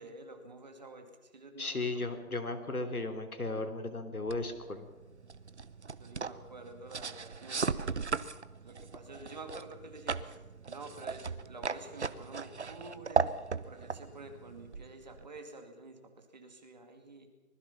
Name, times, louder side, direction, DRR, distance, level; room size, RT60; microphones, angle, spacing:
voice 1, 0.0-2.1 6.0-8.2 8.6-17.3, right 2 dB, 30° right, 5 dB, 2.3 m, -49 dB
voice 2, 1.6-4.9, left 2 dB, 80° left, 8 dB, 3.4 m, -35 dB
sound 1, 4.3-15.4, right 5 dB, 50° right, 0.8 m, -37 dB
25.0 x 20.0 x 5.8 m, 1.3 s
figure-of-eight pair, 170°, 43 cm